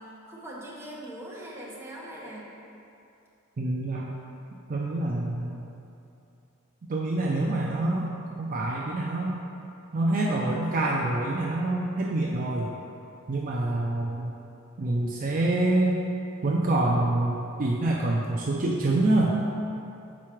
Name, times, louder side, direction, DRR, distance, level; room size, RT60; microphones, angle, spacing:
voice 1, 0.0-2.5, right 1 dB, 10° right, -6 dB, 1.1 m, -41 dB
voice 2, 3.6-4.2 4.7-5.6 6.9-8.1 8.4-9.4 9.9-12.7 13.3-14.3 14.8-16.0 16.4-19.3, right 2 dB, 40° right, -2 dB, 0.4 m, -26 dB
6.1 x 4.7 x 4.5 m, 2.7 s
head